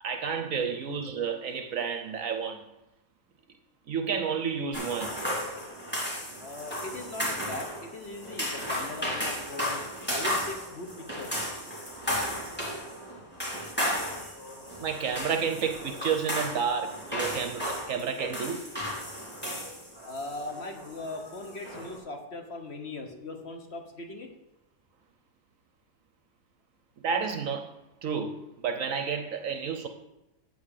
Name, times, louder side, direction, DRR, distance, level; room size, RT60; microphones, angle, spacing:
voice 1, 0.0-2.7 3.9-5.2 14.8-18.6 27.0-27.7 28.0-29.9, right 6 dB, 60° right, 7 dB, 1.0 m, -31 dB
sound 1, 4.7-22.0, equal, 5° left, 3.0 m, -34 dB
voice 2, 6.4-9.8 10.1-11.4 14.1-14.4 20.0-24.3, left 2 dB, 45° left, 4 dB, 1.2 m, -39 dB
8.6 x 5.5 x 6.6 m, 0.95 s
omnidirectional pair, 1.7 m